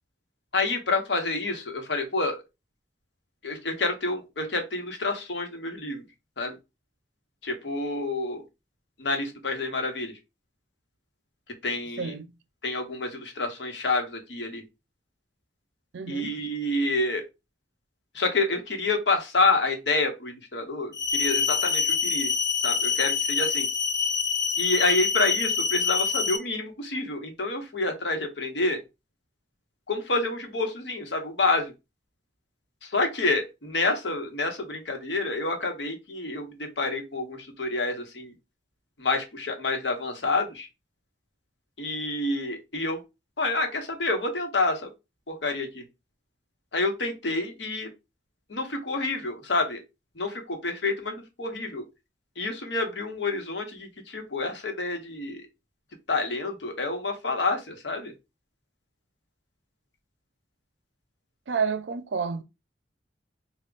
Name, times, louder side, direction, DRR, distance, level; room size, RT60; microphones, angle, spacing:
voice 1, 0.5-2.4 3.4-6.0 6.4-6.6 7.4-8.4 9.0-10.1 11.6-12.1 12.6-14.6 16.1-17.2 18.1-22.3 22.6-23.7 24.6-28.8 29.9-31.7 32.8-38.3 39.0-40.7 41.8-43.0 43.4-44.9 45.3-45.8 46.7-47.9 48.5-49.8 50.2-51.8 52.4-55.4 56.1-58.1, left 3 dB, 80° left, 1.0 m, -28 dB
voice 2, 12.0-12.4 15.9-16.4 61.5-62.4, right 5 dB, 85° right, 0.5 m, -30 dB
sound 1, 20.9-26.4, left 6 dB, 20° left, 0.4 m, -26 dB
3.4 x 2.3 x 3.8 m
head